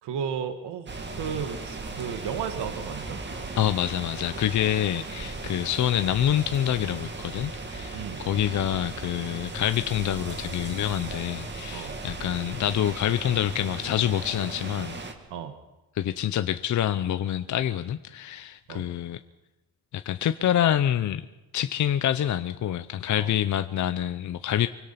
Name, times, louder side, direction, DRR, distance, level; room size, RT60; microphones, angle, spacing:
voice 1, 0.0-3.2 7.9-8.2 11.7-12.0 15.3-15.6 18.7-18.9 23.2-23.3, right 7 dB, 80° right, 8 dB, 2.0 m, -34 dB
sound 1, 0.9-15.1, right 3 dB, 25° right, 2.4 m, -37 dB
voice 2, 3.6-15.0 16.0-19.2 19.9-21.3 21.5-24.7, left 11 dB, 45° left, 10 dB, 0.7 m, -26 dB
25.0 x 24.0 x 5.8 m, 1.0 s
cardioid pair, 150°, 40 cm